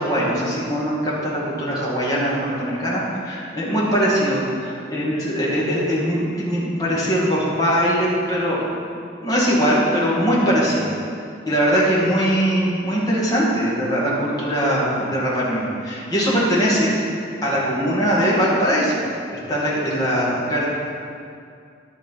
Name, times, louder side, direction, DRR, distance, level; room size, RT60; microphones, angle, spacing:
voice 1, 0.0-8.6 9.2-10.9 11.5-16.9 17.4-19.0 19.3-20.7, equal, 20° left, -6 dB, 2.1 m, -21 dB
11.0 x 5.9 x 5.7 m, 2.4 s
head